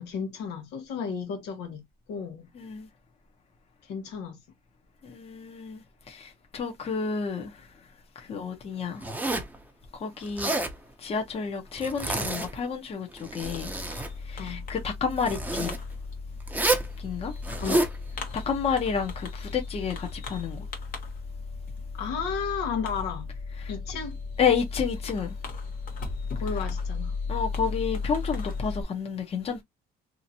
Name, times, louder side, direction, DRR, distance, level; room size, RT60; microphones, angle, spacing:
voice 1, 0.0-2.5 3.8-4.4 8.3-8.5 14.4-14.7 17.5-17.8 21.9-23.3 23.7-24.1 26.4-27.2, left 6 dB, 85° left, 1.1 m, -33 dB
voice 2, 2.5-2.9 5.0-7.7 8.2-9.0 9.9-10.5 11.0-13.7 14.2-15.7 17.0-17.3 18.3-20.7 24.4-25.4 27.3-29.6, left 6 dB, 35° left, 0.9 m, -30 dB
Zipper (clothing), 9.0-9.6 10.2-10.8 11.8-12.7 13.1-14.1 15.2-15.8 16.5-16.9 17.4-18.0, right 2 dB, 10° right, 0.7 m, -28 dB
Fireworks, 13.4-28.8, left 4 dB, 55° left, 1.1 m, -35 dB
2.9 x 2.5 x 2.7 m
cardioid pair, 110°, 17 cm